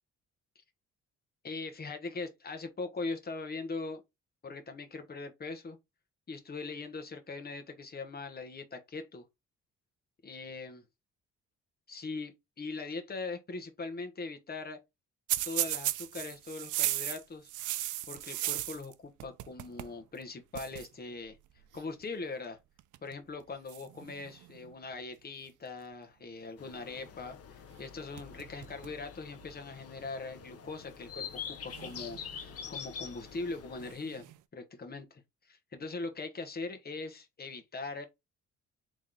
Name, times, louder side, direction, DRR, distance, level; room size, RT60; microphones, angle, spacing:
voice 1, 1.4-4.0 4.4-5.8 6.3-9.2 10.2-10.8 11.9-14.8 15.4-17.5 18.1-21.4 21.7-22.6 23.0-38.1, left 3 dB, 30° left, 1.1 m, -41 dB
sound 1, 15.3-18.9 19.2-20.0 20.2-20.3 20.5-20.9 21.7-22.0 22.8-23.1 23.7-24.7 27.7-27.8 28.2-29.0 29.4-29.5 30.4-30.5 31.7-32.6 33.8-34.4, right 15 dB, 80° right, 0.5 m, -36 dB
sound 2, 26.6-33.9, left 7 dB, 55° left, 0.8 m, -46 dB
3.5 x 3.2 x 3.8 m
cardioid pair, 90°, 30 cm